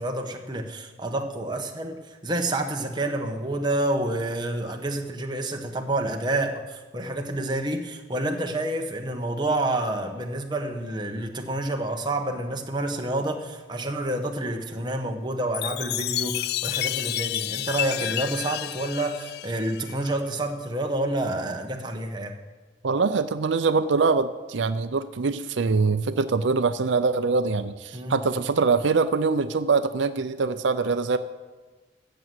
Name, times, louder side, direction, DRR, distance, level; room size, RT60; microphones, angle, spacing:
voice 1, 0.0-22.4 27.9-28.3, right 1 dB, 25° right, 3 dB, 1.2 m, -28 dB
Chime, 15.5-20.1, left 14 dB, 55° left, 0.3 m, -30 dB
voice 2, 22.8-31.2, right 4 dB, 80° right, 11 dB, 0.5 m, -23 dB
13.5 x 7.7 x 7.8 m, 1.3 s
head